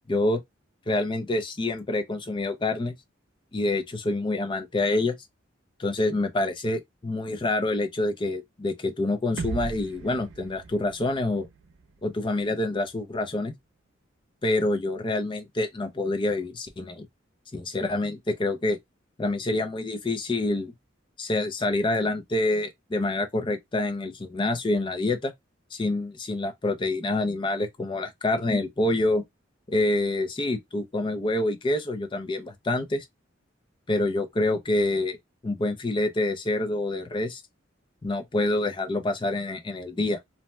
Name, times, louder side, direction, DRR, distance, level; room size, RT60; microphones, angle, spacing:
voice 1, 0.1-0.4 0.9-2.9 3.5-5.1 5.8-11.5 12.0-13.5 14.4-17.1 17.5-18.8 19.2-20.7 21.2-25.3 25.7-29.2 29.7-33.1 33.9-35.2 35.4-37.4 38.0-40.2, left 2 dB, 25° left, 0.5 m, -27 dB
sound 1, 9.4-13.3, right 4 dB, 75° right, 0.5 m, -39 dB
2.6 x 2.1 x 3.1 m
head